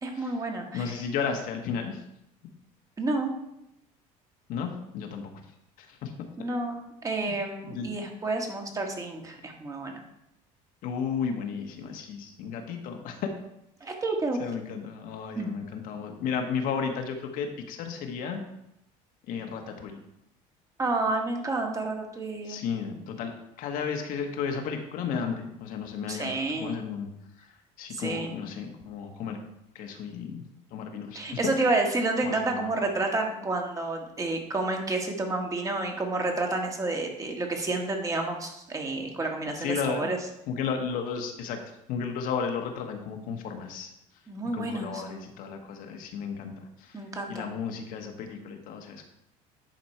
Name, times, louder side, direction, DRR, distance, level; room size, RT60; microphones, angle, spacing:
voice 1, 0.0-1.0 3.0-3.3 6.4-10.0 13.8-14.4 15.3-15.5 20.8-22.6 26.1-26.8 27.9-28.3 31.1-40.2 44.3-45.2 46.9-47.5, right 2 dB, 20° right, 2 dB, 1.6 m, -30 dB
voice 2, 0.7-2.0 4.5-5.3 5.8-6.1 7.2-7.3 7.6-7.9 10.8-13.3 14.4-18.4 19.3-20.0 22.4-26.3 26.6-27.1 27.8-29.4 29.7-30.4 30.7-31.2 32.2-32.7 39.6-40.1 40.5-41.6 41.9-43.9 44.5-46.5 46.8-47.0 47.3-49.1, left 6 dB, 65° left, 4 dB, 1.3 m, -33 dB
10.5 x 4.4 x 4.4 m, 0.83 s
cardioid pair, 115°, 15 cm